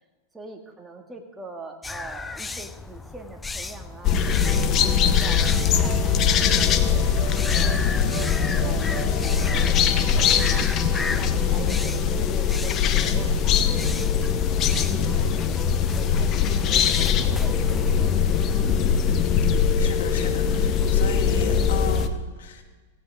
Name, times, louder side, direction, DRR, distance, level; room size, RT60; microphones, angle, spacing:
voice 1, 0.3-5.4 5.8-7.9 8.2-10.6 11.2-13.6 14.1-18.1, right 3 dB, 5° right, 1 dB, 2.2 m, -44 dB
sound 1, 1.8-18.1, left 3 dB, 10° left, 0.5 m, -36 dB
sound 2, 4.0-22.1, left 7 dB, 35° left, 1.0 m, -22 dB
sound 3, 4.5-18.8, right 6 dB, 25° right, 1.7 m, -38 dB
voice 2, 19.4-22.6, left 6 dB, 80° left, 4 dB, 2.6 m, -35 dB
17.5 x 17.0 x 3.8 m, 1.3 s
hypercardioid pair, 135°, 0 cm